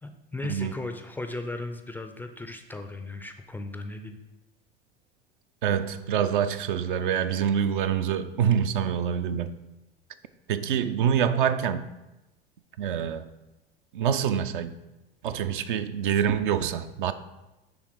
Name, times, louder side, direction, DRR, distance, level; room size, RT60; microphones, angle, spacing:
voice 1, 0.0-4.2, left 2 dB, 5° left, 0.4 m, -36 dB
voice 2, 5.6-9.5 10.5-11.9 12.8-13.3 13.9-14.7 15.2-17.1, right 8 dB, 60° right, 0.5 m, -26 dB
10.5 x 3.5 x 4.8 m
figure-of-eight pair, 75°, 29 cm